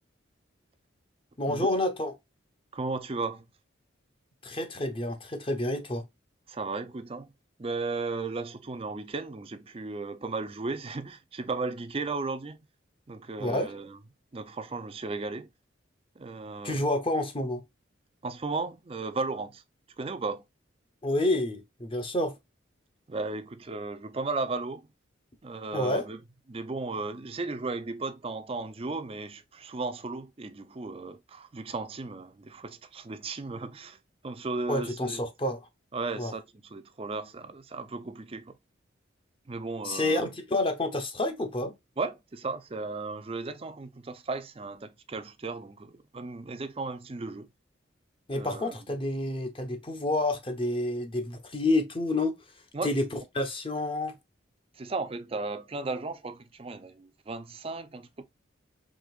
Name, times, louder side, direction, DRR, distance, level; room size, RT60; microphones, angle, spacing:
voice 1, 1.4-2.1 4.4-6.0 13.4-13.7 16.6-17.6 21.0-22.3 25.7-26.0 34.7-35.6 36.2-36.3 39.8-41.7 48.3-52.4 52.8-54.1, left 1 dB, 30° left, 0.9 m, -29 dB
voice 2, 2.7-3.5 6.5-7.3 7.6-12.7 13.1-14.0 14.3-15.5 16.2-16.9 18.2-19.6 20.0-20.4 23.1-24.9 25.4-26.2 26.5-34.0 34.2-35.2 35.9-36.4 36.7-38.6 39.5-40.3 42.0-47.5 48.3-48.7 52.7-52.9 54.8-58.2, right 3 dB, 30° right, 0.5 m, -35 dB
5.1 x 3.5 x 2.4 m
head